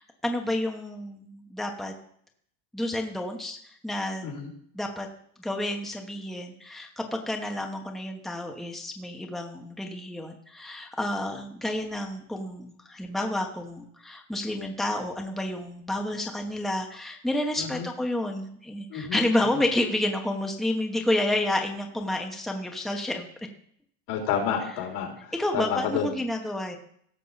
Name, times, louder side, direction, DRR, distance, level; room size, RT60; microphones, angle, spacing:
voice 1, 0.0-1.9 2.7-4.3 4.7-5.1 5.4-23.3 25.3-26.8, left 1 dB, ahead, 2 dB, 1.1 m, -30 dB
voice 2, 17.6-17.9 18.9-19.2 19.5-19.6 24.1-26.1, left 7 dB, 75° left, 1 dB, 3.6 m, -30 dB
17.0 x 6.5 x 4.1 m, 0.65 s
cardioid pair, 125°, 46 cm